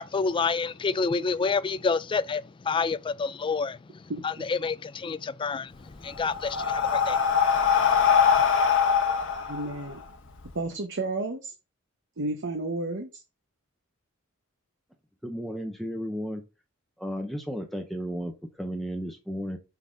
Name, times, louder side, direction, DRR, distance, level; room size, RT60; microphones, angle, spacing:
voice 1, 0.0-8.4, left 4 dB, 25° left, 0.3 m, -29 dB
Breathing, 5.7-10.5, left 7 dB, 60° left, 1.2 m, -23 dB
voice 2, 9.5-10.0 10.5-11.5 12.2-13.2, right 2 dB, 60° right, 0.9 m, -31 dB
voice 3, 15.2-16.4 17.0-19.6, equal, ahead, 0.7 m, -34 dB
5.6 x 4.0 x 5.0 m
head